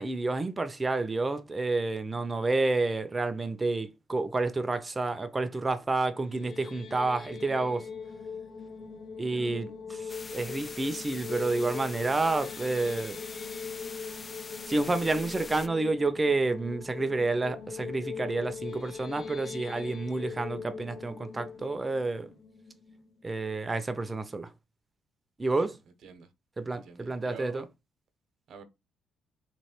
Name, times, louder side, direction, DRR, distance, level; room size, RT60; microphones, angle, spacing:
voice 1, 0.0-7.9 9.2-13.2 14.7-22.3 23.2-24.5 25.4-25.8 26.6-27.7, right 3 dB, 20° right, 0.7 m, -29 dB
sound 1, 6.1-23.3, left 5 dB, 65° left, 1.1 m, -41 dB
voice 2, 9.3-9.6 25.5-25.7 26.0-26.3 26.7-27.7 28.5-28.6, right 5 dB, 65° right, 1.0 m, -47 dB
sound 2, 10.1-15.7, left 4 dB, 35° left, 0.4 m, -44 dB
3.2 x 3.0 x 4.5 m
cardioid pair, 90°, 0 cm